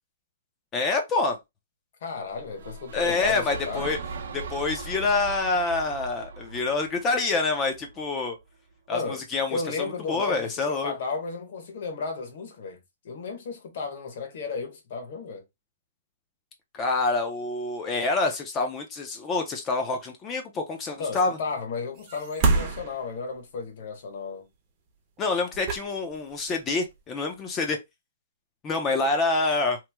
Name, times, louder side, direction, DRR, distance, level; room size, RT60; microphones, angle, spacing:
voice 1, 0.7-1.4 2.9-4.0 4.3-8.4 8.9-10.9 16.7-21.4 25.2-27.8 28.6-29.8, left 3 dB, 15° left, 0.5 m, -27 dB
voice 2, 2.0-3.8 8.9-9.2 9.5-12.8 13.0-15.4 21.0-24.5, left 4 dB, 50° left, 1.0 m, -33 dB
sound 1, 2.3-8.4, right 3 dB, 65° right, 0.6 m, -40 dB
sound 2, 22.0-23.6 25.2-25.3 25.5-26.5 26.9-27.1, right 3 dB, 25° right, 0.7 m, -27 dB
3.0 x 2.0 x 3.4 m
hypercardioid pair, 165°, 0 cm